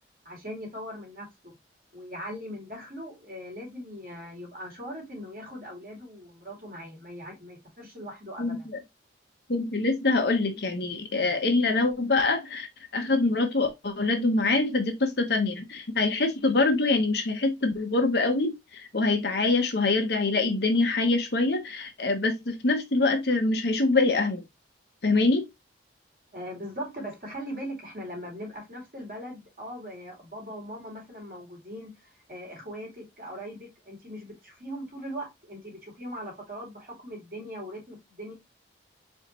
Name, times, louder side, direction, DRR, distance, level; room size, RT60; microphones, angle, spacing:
voice 1, 0.2-1.3 1.9-8.7 26.3-38.3, equal, 50° right, 2.6 m, -40 dB
voice 2, 9.5-12.7 12.9-24.4 25.0-25.5, left 3 dB, 60° left, 1.0 m, -24 dB
4.6 x 3.2 x 2.9 m
head